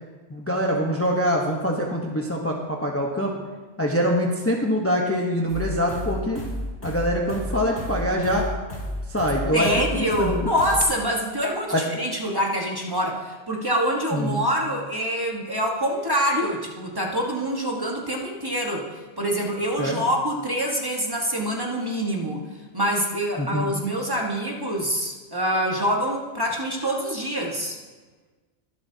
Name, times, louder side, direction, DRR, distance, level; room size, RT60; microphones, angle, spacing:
voice 1, 0.3-3.3 3.8-6.4 6.8-8.4 9.1-10.4 11.7-11.8 14.1-14.4 19.8-20.0 23.4-23.7, equal, 15° left, -1 dB, 0.9 m, -24 dB
sound 1, 5.5-10.8, left 1 dB, 80° left, 3.9 m, -32 dB
voice 2, 9.5-18.9 19.2-22.4 22.7-27.8, equal, 20° right, -1 dB, 1.3 m, -25 dB
22.0 x 7.6 x 2.8 m, 1.3 s
omnidirectional pair, 1.2 m